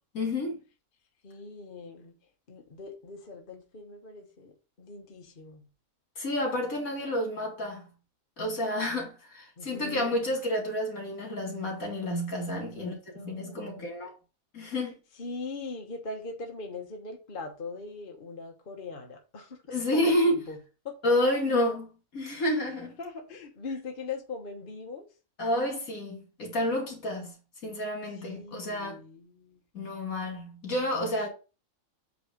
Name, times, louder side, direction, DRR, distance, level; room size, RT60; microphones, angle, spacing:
voice 1, 0.1-0.6 6.2-7.9 8.4-13.0 13.2-14.1 14.5-14.9 19.7-20.4 21.0-22.9 25.4-27.3 27.6-29.0 29.7-31.3, left 1 dB, 75° left, 2.7 m, -29 dB
voice 2, 1.2-2.2 2.5-5.7 9.6-10.2 12.7-13.9 15.2-19.6 19.9-20.6 20.8-21.0 23.0-25.1 28.2-29.6 31.1-31.3, left 3 dB, 40° left, 1.2 m, -41 dB
8.2 x 3.1 x 5.2 m
omnidirectional pair, 1.5 m